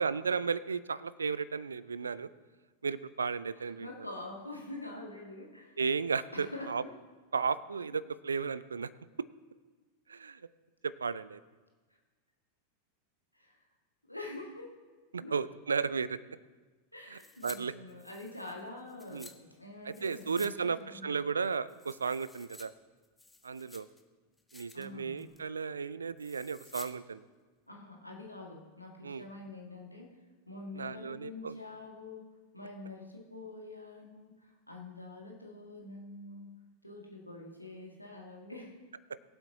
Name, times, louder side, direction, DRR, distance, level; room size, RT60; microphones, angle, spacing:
voice 1, 0.0-2.3 2.8-3.9 5.8-6.8 7.3-8.9 10.1-10.4 10.8-11.4 15.1-16.2 17.1-17.7 19.1-19.3 19.9-22.7 23.4-23.9 24.5-27.2 29.0-29.3 30.7-31.5, right 5 dB, 75° right, 19 dB, 0.4 m, -34 dB
voice 2, 3.5-5.8 6.3-6.9 7.9-8.0 13.3-13.6 14.1-14.7 15.2-15.4 16.9-21.2 24.7-25.3 27.7-30.1 30.5-32.3 32.5-36.5 36.8-38.8, left 2 dB, 90° left, -1 dB, 1.8 m, -46 dB
sound 1, 17.1-17.6 17.9-19.3 19.9-20.5 20.8-20.9 21.4-22.6 23.0-24.0 24.4-24.9 25.2-25.5 26.2-26.9 27.2-27.3, left 3 dB, 10° left, 0.9 m, -53 dB
22.5 x 7.9 x 2.8 m, 1.4 s
figure-of-eight pair, 90°, 0 cm